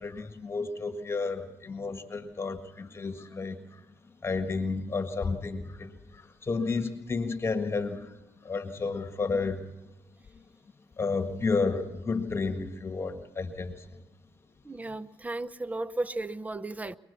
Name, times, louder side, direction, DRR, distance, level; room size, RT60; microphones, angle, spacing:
voice 1, 0.0-3.6 4.2-8.1 8.5-9.6 11.0-13.7, left 4 dB, 30° left, 7 dB, 1.7 m, -31 dB
voice 2, 14.6-17.0, right 2 dB, 15° right, 16 dB, 0.8 m, -34 dB
23.5 x 20.5 x 7.0 m, 1.0 s
supercardioid pair, 80°, 9 cm